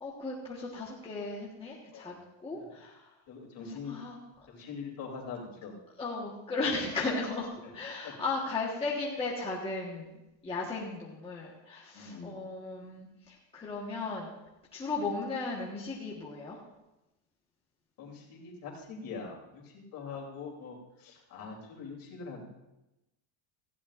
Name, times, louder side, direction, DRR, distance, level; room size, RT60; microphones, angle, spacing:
voice 1, 0.0-2.1 2.4-3.0 3.9-4.2 6.0-7.5 7.7-14.3 14.7-16.6, left 3 dB, 10° left, -5 dB, 1.3 m, -36 dB
voice 2, 3.3-4.0 4.5-5.7 6.7-6.8 7.6-7.7 8.0-8.1 11.9-12.3 18.0-22.4, left 5 dB, 45° left, 0 dB, 3.1 m, -43 dB
18.5 x 15.0 x 2.5 m, 0.96 s
cardioid pair, 180°, 48 cm